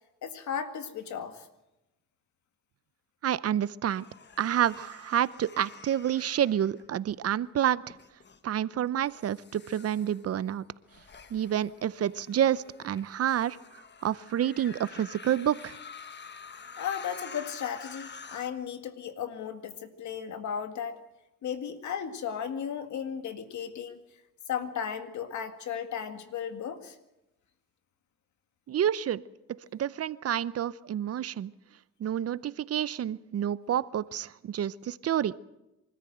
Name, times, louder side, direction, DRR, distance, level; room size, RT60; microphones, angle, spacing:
voice 1, 0.2-1.5 16.8-21.0 21.4-24.0 24.5-27.0, left 8 dB, 70° left, 8 dB, 2.0 m, -35 dB
voice 2, 3.2-4.0 4.4-7.8 8.4-10.6 11.3-13.6 14.0-15.8 28.7-29.2 29.7-31.5 32.0-35.3, right 10 dB, 50° right, 18 dB, 0.7 m, -28 dB
sound 1, 3.9-7.3 7.9-8.4 9.1-18.5, left 6 dB, 35° left, 1.4 m, -48 dB
24.5 x 14.0 x 7.9 m, 0.94 s
cardioid pair, 90°, 30 cm